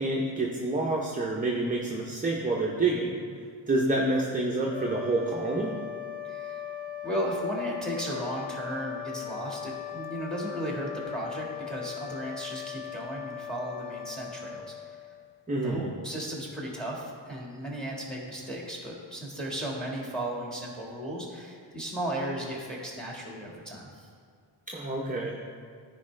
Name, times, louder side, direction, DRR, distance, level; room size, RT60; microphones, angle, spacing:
voice 1, 0.0-3.2 3.7-5.7 15.5-15.9 24.7-25.4, right 2 dB, 20° right, -2 dB, 0.6 m, -28 dB
sound 1, 4.6-15.3, left 10 dB, 20° left, 1.8 m, -39 dB
voice 2, 6.2-6.6 7.0-15.0 15.6-24.1, right 1 dB, ahead, -2 dB, 1.6 m, -35 dB
14.0 x 4.8 x 3.2 m, 2.1 s
wide cardioid pair, 145°, 44 cm